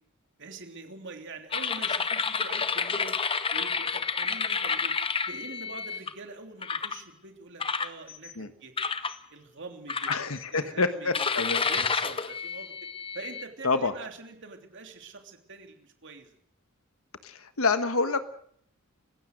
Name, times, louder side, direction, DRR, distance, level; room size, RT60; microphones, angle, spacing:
voice 1, 0.4-3.2 3.5-4.9 5.3-8.7 9.3-10.1 10.5-11.2 11.7-12.7 13.1-16.3, right 3 dB, 60° right, 4 dB, 3.2 m, -44 dB
sound 1, 1.5-6.1 6.6-7.0 7.6-8.3 8.8-9.2 9.9-10.6 11.1-13.5, left 5 dB, 25° left, 0.9 m, -30 dB
voice 2, 10.1-11.6 13.6-13.9 17.2-18.2, left 3 dB, 75° left, 10 dB, 1.4 m, -27 dB
28.0 x 16.0 x 6.6 m, 0.65 s
head